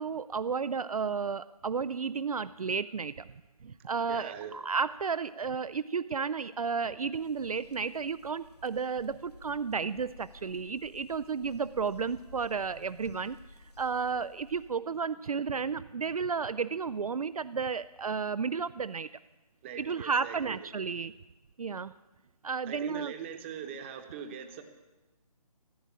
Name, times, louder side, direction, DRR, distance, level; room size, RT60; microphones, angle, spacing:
voice 1, 0.0-3.3 3.6-13.4 13.8-19.1 19.8-21.1 21.6-21.9 22.4-23.1, right 5 dB, 65° right, 14 dB, 0.4 m, -32 dB
voice 2, 4.1-4.6 19.6-20.6 22.7-24.6, right 8 dB, 20° right, 7 dB, 1.0 m, -41 dB
sound 1, 7.1-14.8, left 2 dB, 80° left, 1.7 m, -55 dB
15.0 x 9.0 x 8.5 m, 1.1 s
figure-of-eight pair, 145°, 20 cm